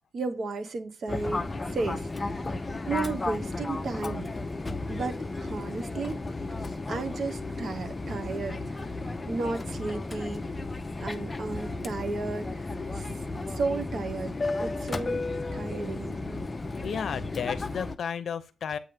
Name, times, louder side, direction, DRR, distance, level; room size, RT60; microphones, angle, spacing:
voice 1, 0.1-2.3 2.9-4.3 4.9-6.2 6.9-8.6 9.2-10.4 11.0-12.7 12.9-13.1 13.5-15.2 15.5-16.5, right 3 dB, 55° right, 0.8 m, -34 dB
Fixed-wing aircraft airplane, 1.1-18.0, left 2 dB, 25° left, 0.6 m, -34 dB
voice 2, 16.7-18.8, left 7 dB, 65° left, 0.7 m, -33 dB
8.2 x 3.1 x 5.1 m
cardioid pair, 100°, 0 cm